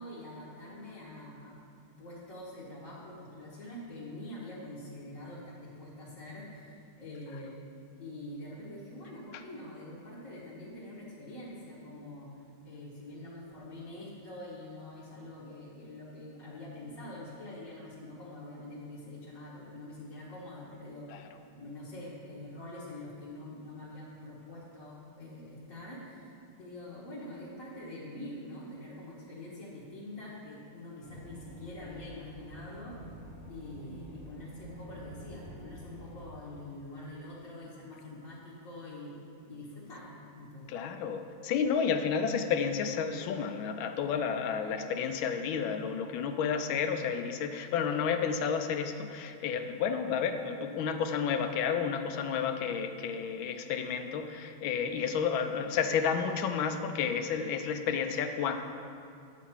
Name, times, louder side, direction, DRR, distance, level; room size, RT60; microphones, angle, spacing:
voice 1, 0.0-1.6 2.0-7.6 8.0-21.2 21.5-26.3 26.6-33.0 33.5-39.2 39.5-40.8, left 1 dB, 45° left, -8 dB, 1.4 m, -45 dB
sound 1, 31.0-36.2, equal, 25° left, 0.9 m, -48 dB
voice 2, 40.7-58.6, left 6 dB, 80° left, 7 dB, 1.3 m, -31 dB
9.1 x 4.1 x 7.2 m, 2.4 s
omnidirectional pair, 2.2 m